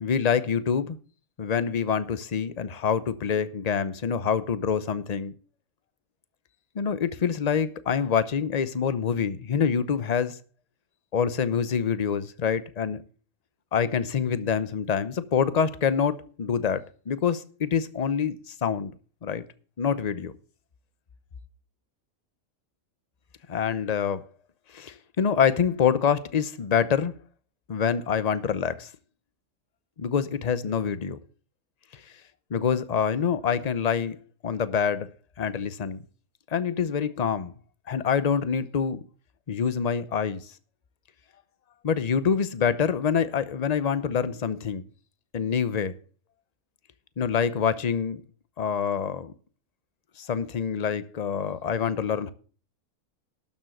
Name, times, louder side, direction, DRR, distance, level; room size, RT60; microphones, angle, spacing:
voice 1, 0.0-1.0 1.4-5.3 6.7-10.4 11.1-13.0 13.7-16.8 17.1-18.9 19.2-19.4 19.8-20.3 23.5-24.2 24.7-27.1 27.7-28.9 30.0-31.2 31.9-32.0 32.5-34.2 34.4-35.1 35.4-36.0 36.5-37.5 37.9-39.0 39.5-40.5 41.8-44.8 45.3-45.9 47.2-48.2 48.6-49.3 50.2-52.3, left 7 dB, 35° left, 0.7 m, -26 dB
12.0 x 7.3 x 6.5 m
omnidirectional pair, 1.5 m